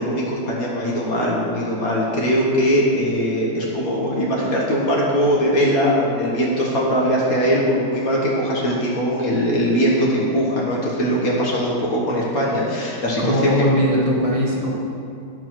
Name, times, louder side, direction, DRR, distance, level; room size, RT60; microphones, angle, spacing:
voice 1, 0.0-13.7, equal, 60° left, -4 dB, 1.7 m, -21 dB
voice 2, 13.2-14.7, equal, 25° left, -5 dB, 1.1 m, -20 dB
11.5 x 4.8 x 5.9 m, 2.6 s
omnidirectional pair, 1.8 m